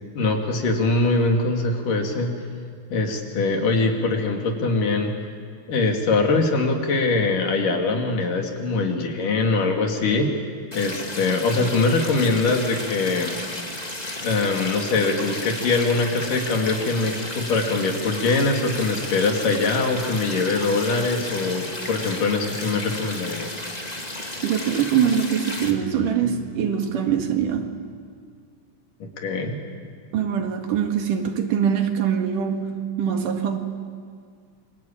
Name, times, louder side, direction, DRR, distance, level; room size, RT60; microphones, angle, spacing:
voice 1, 0.1-2.3 2.9-5.1 5.7-10.3 10.7-13.4 14.2-23.6 29.0-29.6, left 3 dB, 85° left, 2 dB, 4.4 m, -22 dB
sound 1, 10.7-25.7, left 1 dB, 15° left, 1.9 m, -33 dB
voice 2, 24.4-27.8 30.1-33.6, right 8 dB, 80° right, 5 dB, 3.5 m, -23 dB
28.5 x 24.0 x 8.8 m, 2.1 s
omnidirectional pair, 3.7 m